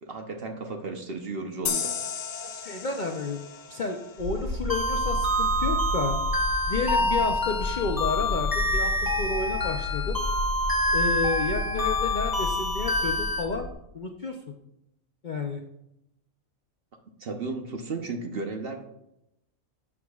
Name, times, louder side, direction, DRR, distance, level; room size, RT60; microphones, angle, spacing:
voice 1, 0.0-1.9 17.2-18.9, right 3 dB, 50° right, 4 dB, 1.0 m, -34 dB
sound 1, 1.7-5.0, left 7 dB, 75° left, 1.1 m, -35 dB
voice 2, 2.4-3.4 3.7-6.2 6.7-10.2 10.9-13.7 13.9-14.5 15.2-15.6, left 4 dB, 50° left, 3 dB, 0.6 m, -31 dB
sound 2, 4.2-13.7, left 1 dB, 65° right, 2.4 m, -33 dB
sound 3, 4.7-13.4, left 1 dB, 15° left, 1.0 m, -27 dB
11.0 x 7.3 x 2.4 m, 0.83 s
omnidirectional pair, 1.4 m